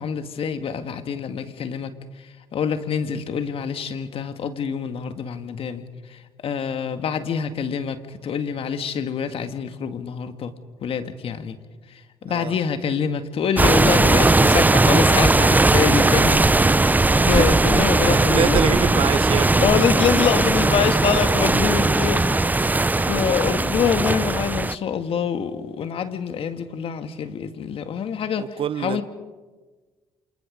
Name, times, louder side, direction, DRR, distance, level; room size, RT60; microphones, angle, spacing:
voice 1, 0.0-1.9 2.5-5.8 6.1-10.5 10.8-11.6 11.9-19.0 19.6-22.3 23.1-29.0, left 7 dB, 60° left, 2.0 m, -26 dB
sound 1, 13.6-24.8, right 2 dB, 15° right, 0.7 m, -18 dB
voice 2, 15.7-16.0 17.3-17.4 17.8-19.7 22.9-23.2 28.4-29.0, right 9 dB, 55° right, 0.9 m, -26 dB
28.5 x 27.5 x 5.2 m
hypercardioid pair, 55°, 11 cm